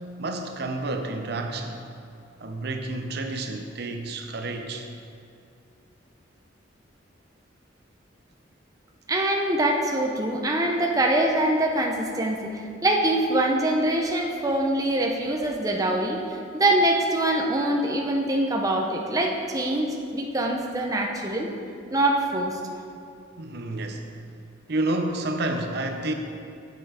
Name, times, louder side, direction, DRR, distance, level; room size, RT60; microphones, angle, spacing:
voice 1, 0.2-1.8 2.4-4.9 23.4-24.1 24.7-26.1, right 2 dB, 55° right, 4 dB, 0.6 m, -30 dB
voice 2, 9.1-21.5 21.9-22.6, right 1 dB, 20° right, 1 dB, 0.6 m, -24 dB
8.0 x 6.8 x 4.9 m, 2.4 s
head